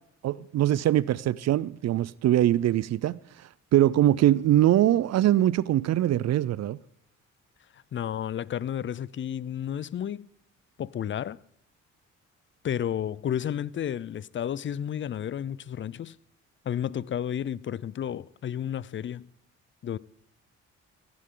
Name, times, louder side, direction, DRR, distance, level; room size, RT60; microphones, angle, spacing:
voice 1, 0.2-3.2 3.7-6.8, right 13 dB, 60° right, 0.5 m, -22 dB
voice 2, 7.9-10.3 10.8-11.4 12.6-16.2 16.6-19.3 19.8-20.0, left 9 dB, 40° left, 0.5 m, -32 dB
17.0 x 15.5 x 3.8 m
cardioid pair, 90°, 30 cm